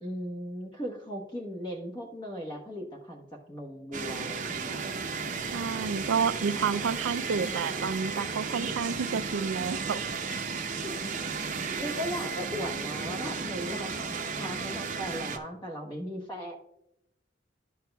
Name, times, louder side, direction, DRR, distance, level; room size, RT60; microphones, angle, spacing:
voice 1, 0.0-4.8 10.8-10.9 11.8-16.6, equal, 25° left, 1 dB, 1.1 m, -37 dB
sound 1, 3.9-15.4, right 5 dB, 40° right, 0.7 m, -34 dB
voice 2, 5.5-10.0, right 6 dB, 80° right, 12 dB, 0.4 m, -30 dB
11.5 x 6.0 x 2.3 m, 0.83 s
head